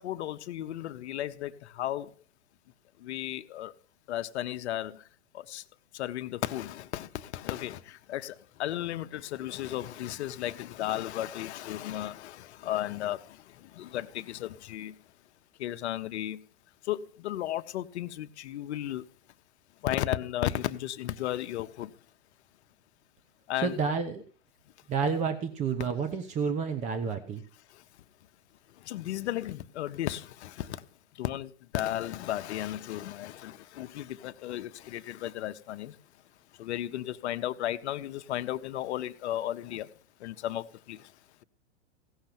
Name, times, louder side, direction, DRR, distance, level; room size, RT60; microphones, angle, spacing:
voice 1, 0.0-2.1 3.0-3.7 4.1-5.0 5.3-5.6 5.9-15.0 15.6-16.4 16.8-19.1 19.8-21.9 23.5-23.8 27.7-27.8 28.8-30.8 31.1-36.0 36.6-39.9 40.2-41.1, left 13 dB, 60° left, 0.9 m, -34 dB
voice 2, 23.6-24.2 24.9-27.4, right 5 dB, 20° right, 0.9 m, -30 dB
16.5 x 6.5 x 5.9 m
hypercardioid pair, 140°, 38 cm